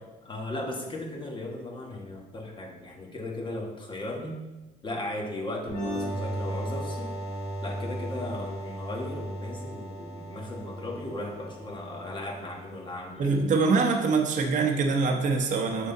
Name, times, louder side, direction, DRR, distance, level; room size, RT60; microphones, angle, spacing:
voice 1, 0.2-4.4 4.8-7.1 7.6-13.4, left 1 dB, 30° left, 0 dB, 1.4 m, -36 dB
sound 1, 5.7-13.1, right 1 dB, 75° left, 2.1 m, -36 dB
voice 2, 13.2-15.9, right 4 dB, 50° right, 1 dB, 0.9 m, -24 dB
6.5 x 5.6 x 3.9 m, 1.1 s
cardioid pair, 110°, 17 cm